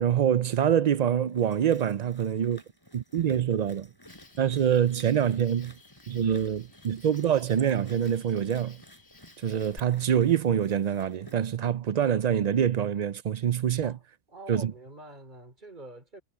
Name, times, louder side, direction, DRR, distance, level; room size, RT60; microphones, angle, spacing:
voice 1, 0.0-2.6 2.9-3.9 4.4-5.7 6.1-8.8 9.4-14.0 14.5-14.7, right 9 dB, 55° right, 0.4 m, -25 dB
sound 1, 1.3-11.5, equal, 20° left, 5.4 m, -55 dB
Cricket, 4.1-9.8, left 3 dB, 65° left, 3.1 m, -55 dB
voice 2, 13.8-16.2, right 1 dB, 40° right, 4.0 m, -46 dB
omnidirectional pair, 1.2 m